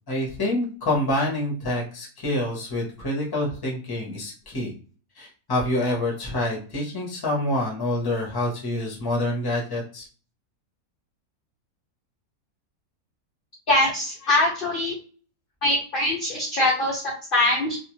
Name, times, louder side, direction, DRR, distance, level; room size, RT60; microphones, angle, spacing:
voice 1, 0.1-4.7 5.2-10.1, left 1 dB, 20° left, -3 dB, 0.6 m, -27 dB
voice 2, 13.7-14.9 15.6-17.8, left 1 dB, 60° left, -2 dB, 0.5 m, -23 dB
2.4 x 2.4 x 3.0 m, 0.39 s
omnidirectional pair, 1.6 m